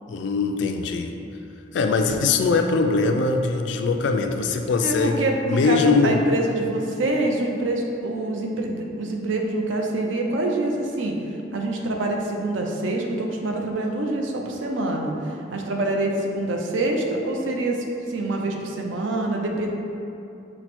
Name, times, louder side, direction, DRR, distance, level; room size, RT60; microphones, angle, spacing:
voice 1, 0.1-1.1 1.7-6.2, left 4 dB, 70° left, 5 dB, 0.3 m, -22 dB
voice 2, 4.8-11.2 11.5-19.7, right 2 dB, 85° right, 1 dB, 0.5 m, -26 dB
5.7 x 2.1 x 4.2 m, 2.7 s
head